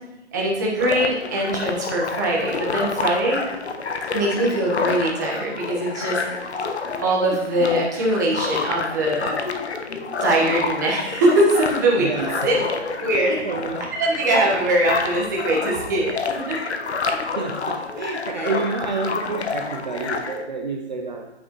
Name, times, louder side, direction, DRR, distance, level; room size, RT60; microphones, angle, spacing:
voice 1, 0.3-3.4 4.1-6.2 7.0-9.4 10.2-12.1 12.4-12.6 13.0-13.5 14.0-16.7, right 1 dB, 15° right, -4 dB, 1.1 m, -22 dB
sound 1, 0.8-20.4, left 4 dB, 70° left, 1.0 m, -29 dB
voice 2, 12.0-12.5 13.0-13.8 17.4-21.3, right 4 dB, 40° right, 3 dB, 0.6 m, -29 dB
8.6 x 7.3 x 3.0 m, 0.96 s
hypercardioid pair, 175°, 34 cm